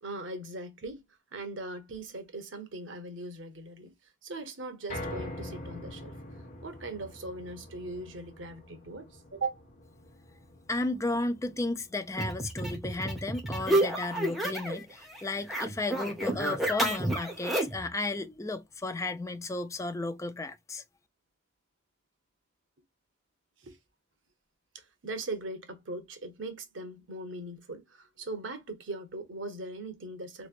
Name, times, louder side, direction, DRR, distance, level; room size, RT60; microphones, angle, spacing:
voice 1, 0.0-1.0 1.3-3.9 4.2-6.1 6.6-9.6 23.6-23.8 24.7-30.5, right 2 dB, 85° right, 1.0 m, -39 dB
sound 1, 4.9-17.1 17.5-17.6 18.1-18.2, left 1 dB, 40° left, 1.2 m, -46 dB
voice 2, 10.7-20.8, left 2 dB, 15° left, 0.3 m, -34 dB
sound 2, 12.1-14.8 15.1-17.9, right 1 dB, ahead, 0.9 m, -30 dB
3.3 x 3.0 x 2.4 m
head